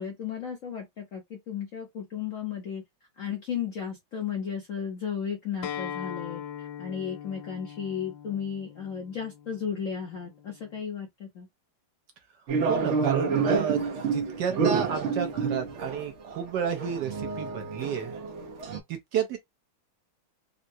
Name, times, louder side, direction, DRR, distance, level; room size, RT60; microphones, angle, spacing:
voice 1, 0.0-2.8 3.2-11.5, left 7 dB, 60° left, 0.8 m, -34 dB
Acoustic guitar, 5.6-10.8, left 9 dB, 75° left, 1.3 m, -41 dB
sound 1, 12.5-18.8, right 5 dB, 85° right, 0.6 m, -29 dB
voice 2, 12.7-18.1 18.9-19.4, right 8 dB, 70° right, 1.1 m, -31 dB
3.7 x 2.1 x 2.6 m
omnidirectional pair, 2.2 m